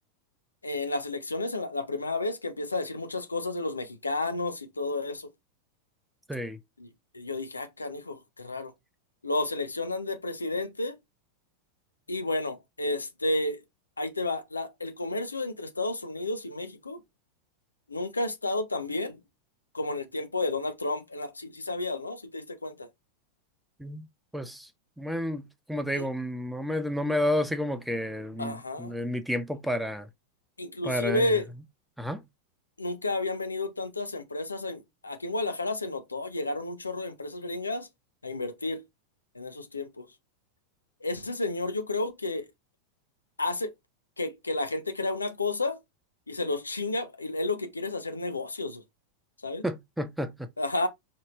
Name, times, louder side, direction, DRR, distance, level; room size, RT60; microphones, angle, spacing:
voice 1, 0.6-5.3 6.8-8.7 9.2-11.0 12.1-13.6 14.0-17.0 17.9-19.2 19.7-22.9 25.9-26.0 28.4-29.1 30.6-31.4 32.8-37.9 38.2-38.8 39.3-40.1 41.0-42.5 43.4-43.7 44.2-45.8 46.3-48.8 49.4-49.6 50.6-50.9, left 2 dB, 80° left, 0.8 m, -31 dB
voice 2, 6.3-6.6 23.8-24.0 24.3-24.7 25.0-30.1 30.8-31.3 32.0-32.2 49.6-50.5, left 1 dB, ahead, 0.5 m, -31 dB
5.1 x 2.8 x 3.0 m
figure-of-eight pair, 90°, 0 cm